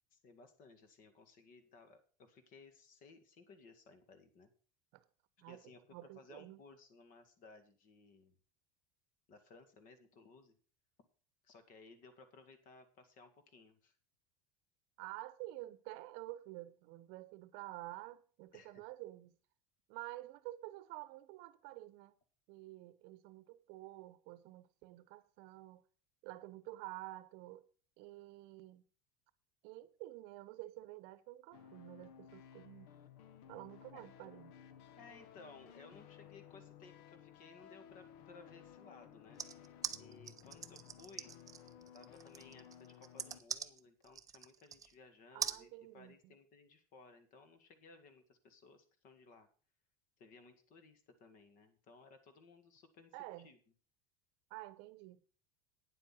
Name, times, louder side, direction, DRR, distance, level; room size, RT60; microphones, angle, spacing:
voice 1, 0.1-4.5 5.5-8.3 9.3-10.6 11.4-13.9 18.5-18.8 33.9-34.0 35.0-39.5 40.0-41.3 41.9-49.5 50.2-53.2 53.4-53.6, left 4 dB, 45° left, 2.0 m, -60 dB
voice 2, 5.4-6.6 15.0-19.3 19.9-22.1 22.5-25.8 26.2-27.6 28.0-28.8 29.6-32.9 33.5-34.5 45.3-46.4 53.1-53.5 54.5-55.2, right 17 dB, 55° right, 0.8 m, -50 dB
sound 1, 31.5-43.4, left 9 dB, 80° left, 1.1 m, -57 dB
sound 2, 39.4-44.9 45.4-45.6, right 7 dB, 20° right, 0.6 m, -42 dB
9.5 x 7.6 x 6.0 m
supercardioid pair, 145°, 19 cm